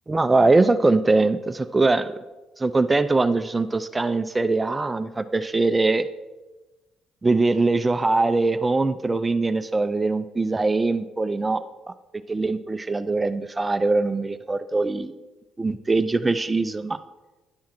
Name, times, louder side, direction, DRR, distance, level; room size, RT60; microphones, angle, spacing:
voice 1, 0.1-2.1 2.6-6.1 7.2-11.9 12.3-15.1 15.6-17.0, right 3 dB, 15° right, 11 dB, 0.4 m, -22 dB
10.5 x 5.8 x 3.8 m, 1.1 s
cardioid pair, 110°, 0 cm